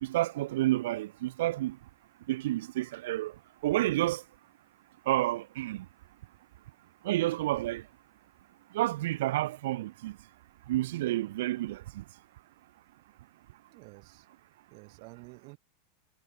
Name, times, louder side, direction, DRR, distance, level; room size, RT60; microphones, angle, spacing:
voice 1, 0.0-1.8 2.3-3.3 3.6-4.2 5.1-5.8 7.0-7.8 8.7-10.2 10.7-12.0, right 16 dB, 70° right, 1.2 m, -30 dB
voice 2, 13.7-14.3 14.7-15.6, right 37 dB, 45° right, 5.9 m, -50 dB
supercardioid pair, 160°, 0 cm